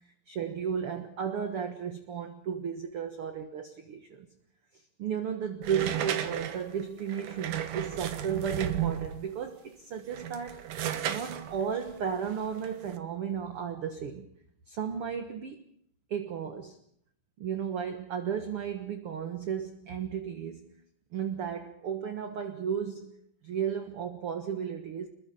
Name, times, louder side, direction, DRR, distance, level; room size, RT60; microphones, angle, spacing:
voice 1, 0.3-4.3 5.0-10.7 11.1-14.3 14.7-15.6 16.1-16.8 17.4-20.7 21.1-25.1, right 8 dB, 50° right, 7 dB, 1.9 m, -34 dB
sound 1, 5.6-9.3 10.0-13.0, right 10 dB, 70° right, 2.8 m, -34 dB
27.0 x 22.0 x 5.3 m, 0.65 s
omnidirectional pair, 3.9 m